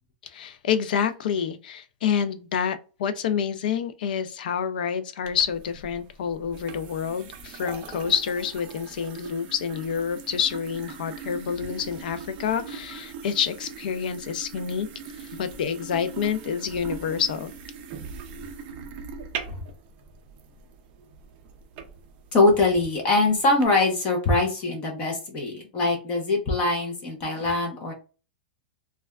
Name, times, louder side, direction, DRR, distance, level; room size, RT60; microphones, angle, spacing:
voice 1, 0.2-14.9 15.2-17.5, left 7 dB, 65° left, 0.5 m, -28 dB
sound 1, 5.2-23.7, right 6 dB, 30° right, 0.4 m, -41 dB
voice 2, 22.3-27.9, left 2 dB, 25° left, 0.7 m, -23 dB
3.2 x 2.3 x 2.3 m
supercardioid pair, 170°, 5 cm